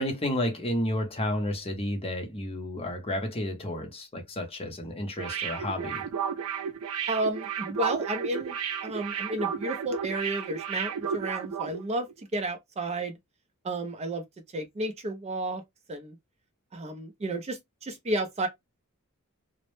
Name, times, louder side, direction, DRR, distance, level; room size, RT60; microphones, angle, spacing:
voice 1, 0.0-6.0, left 1 dB, 25° left, 0.6 m, -31 dB
Synth Talk, 5.2-11.8 12.1-12.2, right 7 dB, 85° right, 0.4 m, -33 dB
voice 2, 7.1-8.6 8.8-13.2 13.6-14.2 14.5-15.6 15.9-16.2 16.7-18.5, right 1 dB, 30° right, 0.4 m, -32 dB
2.0 x 2.0 x 3.0 m
head